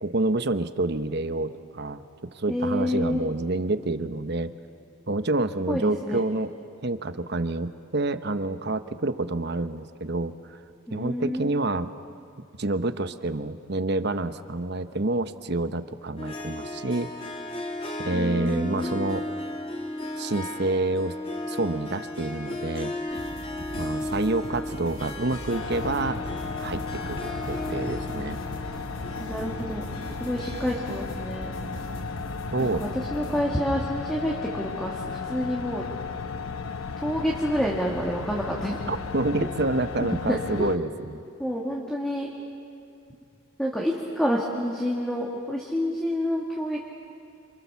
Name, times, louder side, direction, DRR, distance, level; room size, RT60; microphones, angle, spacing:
voice 1, 0.0-2.0 2.3-4.5 5.1-6.5 6.8-10.6 10.9-11.9 12.6-17.1 18.0-19.2 20.2-21.2 21.5-22.9 23.7-26.2 26.6-28.4 32.5-32.8 38.9-41.2, right 2 dB, 50° right, 11 dB, 1.0 m, -28 dB
voice 2, 2.5-3.3 5.7-6.2 10.9-11.6 18.1-19.1 29.2-29.9 30.2-31.5 32.6-35.9 37.0-38.8 40.3-40.8 41.4-42.3 43.6-46.9, equal, 5° left, -3 dB, 2.2 m, -28 dB
Harp, 16.2-32.7, left 1 dB, 30° left, 2.6 m, -36 dB
sound 1, 23.1-33.4, equal, 65° left, 6.6 m, -41 dB
sound 2, 25.5-40.8, left 4 dB, 85° left, 1.0 m, -35 dB
29.0 x 28.0 x 7.1 m, 2.5 s
head